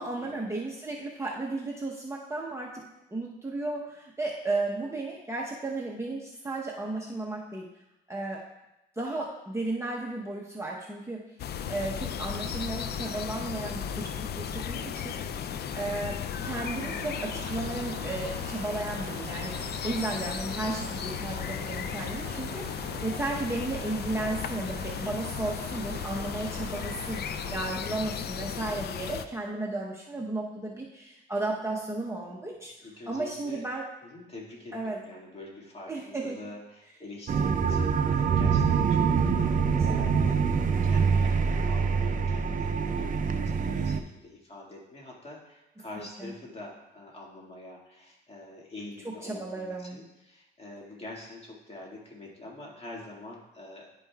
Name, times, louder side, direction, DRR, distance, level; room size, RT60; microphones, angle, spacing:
voice 1, 0.0-2.7 3.1-7.7 8.1-8.4 9.0-11.2 11.7-32.7 33.1-33.8 34.7-35.0 35.9-36.4 39.9-40.3 46.0-46.3 49.0-50.0, right 2 dB, 15° right, -3 dB, 0.9 m, -34 dB
sound 1, 11.4-29.3, left 8 dB, 55° left, 0.4 m, -35 dB
Rain, 16.4-27.6, right 7 dB, 90° right, 0.6 m, -44 dB
voice 2, 32.8-33.6 34.0-53.9, left 2 dB, 30° left, -3 dB, 2.0 m, -45 dB
sound 2, 37.3-44.0, right 6 dB, 40° right, 0.5 m, -25 dB
10.5 x 5.2 x 2.3 m, 0.92 s
cardioid pair, 90°, 20 cm